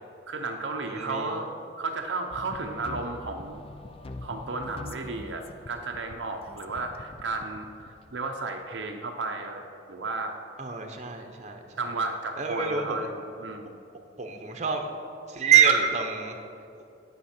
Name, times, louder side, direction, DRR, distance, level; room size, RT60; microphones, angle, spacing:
voice 1, 0.3-1.5 1.8-3.6 4.2-10.4 11.8-13.8, right 3 dB, 70° right, 3 dB, 0.7 m, -33 dB
voice 2, 0.9-1.4 10.6-11.6 12.4-13.1 14.2-14.9 15.3-16.4, right 7 dB, 40° right, 4 dB, 0.9 m, -25 dB
sound 1, 2.3-8.3, left 2 dB, 30° left, 0.4 m, -43 dB
16.5 x 5.6 x 4.4 m, 2.5 s
head